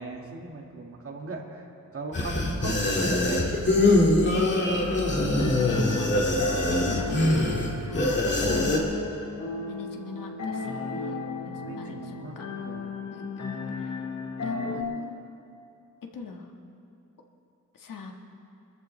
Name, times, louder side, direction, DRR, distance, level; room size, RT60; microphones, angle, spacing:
voice 1, 0.0-3.5 3.7-5.8 11.6-12.4 12.6-13.0, right 3 dB, 45° right, 0 dB, 1.8 m, -39 dB
sound 1, 2.1-8.8, left 1 dB, 35° left, 2.0 m, -23 dB
sound 2, 4.7-14.8, left 4 dB, 55° left, 1.2 m, -35 dB
voice 2, 5.7-6.3 6.7-8.9 9.7-11.1 11.5-12.4 13.1-13.9 14.4-15.2 16.1-16.5 17.7-18.1, left 5 dB, 85° left, 2 dB, 1.6 m, -40 dB
25.0 x 14.0 x 3.2 m, 2.7 s
wide cardioid pair, 165°, 32 cm